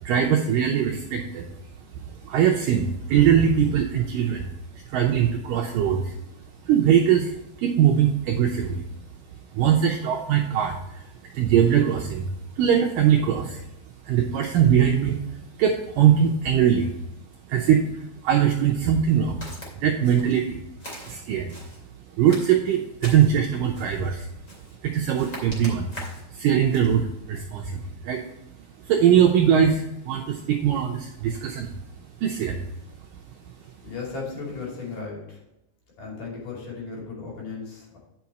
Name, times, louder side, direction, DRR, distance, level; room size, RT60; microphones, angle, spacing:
voice 1, 0.0-1.5 2.0-4.5 4.7-6.2 6.6-8.9 9.5-12.3 12.6-13.6 14.0-16.9 17.5-19.5 19.7-20.6 21.1-21.6 22.2-24.3 24.8-28.2 28.8-31.7 32.2-32.6, right 9 dB, 85° right, 2 dB, 1.9 m, -21 dB
Walk footsteps, 19.4-19.7 20.0-20.4 20.8-21.8 22.2-23.4 23.7-24.0 24.5-24.8 25.1-26.3 26.7-27.0, equal, 25° left, 2.1 m, -41 dB
voice 2, 33.8-35.4 36.0-38.0, left 4 dB, 55° left, -3 dB, 3.8 m, -35 dB
9.7 x 6.0 x 4.1 m, 0.87 s
omnidirectional pair, 4.8 m